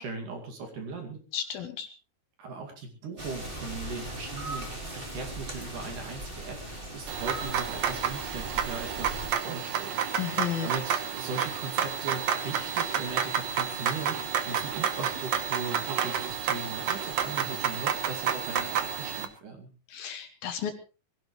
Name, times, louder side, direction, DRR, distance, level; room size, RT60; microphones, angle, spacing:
voice 1, 0.0-1.2 2.4-19.7, right 4 dB, 55° right, 3 dB, 3.6 m, -39 dB
voice 2, 1.3-1.9 10.2-10.7 19.9-20.7, left 9 dB, 65° left, 7 dB, 2.7 m, -33 dB
sound 1, 3.2-9.3, right 1 dB, 15° right, 3.0 m, -39 dB
sound 2, 7.1-19.2, right 8 dB, 75° right, 1.6 m, -30 dB
22.0 x 16.5 x 3.2 m, 0.33 s
omnidirectional pair, 4.9 m